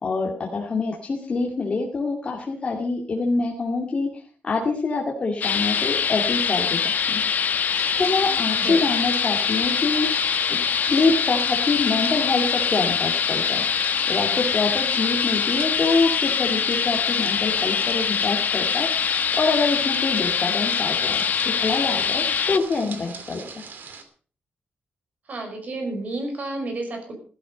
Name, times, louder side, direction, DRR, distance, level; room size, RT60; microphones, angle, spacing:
voice 1, 0.0-7.2 8.0-10.1 10.5-13.7 14.1-18.9 19.3-21.3 21.6-23.6, left 3 dB, 30° left, -1 dB, 2.3 m, -25 dB
sound 1, 5.4-22.6, left 7 dB, 55° left, 1.0 m, -23 dB
sound 2, 7.7-24.0, right 5 dB, 60° right, 2.7 m, -41 dB
voice 2, 8.3-8.9 9.6-9.9 25.2-27.1, right 2 dB, 45° right, 4 dB, 5.5 m, -31 dB
15.5 x 13.5 x 5.2 m, 0.41 s
wide cardioid pair, 170°, 4 cm